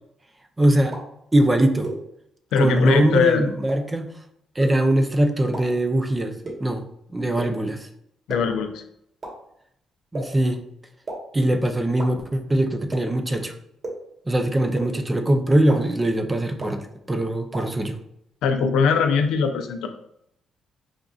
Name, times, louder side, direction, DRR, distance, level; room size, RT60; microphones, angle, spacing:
voice 1, 0.6-0.9 1.3-1.9 2.6-4.1 4.6-6.3 6.6-6.9 7.1-7.8 10.1-10.6 11.3-13.5 14.3-18.0, right 1 dB, 20° right, 6 dB, 0.4 m, -21 dB
sound 1, 0.9-1.0 1.8-1.9 2.8-2.9 3.7-3.8 4.6-4.7 5.5-5.6 6.4-6.5 7.4-7.5 8.3-8.4 9.2-9.3 10.1-10.2 11.1-11.2 12.0-12.1 12.9-13.0 13.8-13.9 14.8-14.9 15.7-15.8 16.6-16.7 17.5-17.6, right 2 dB, 40° right, 1.2 m, -31 dB
voice 2, 2.5-3.4 8.3-8.8 18.4-19.9, left 6 dB, 85° left, 6 dB, 0.4 m, -21 dB
4.9 x 2.5 x 2.3 m, 0.74 s
cardioid pair, 90°, 0 cm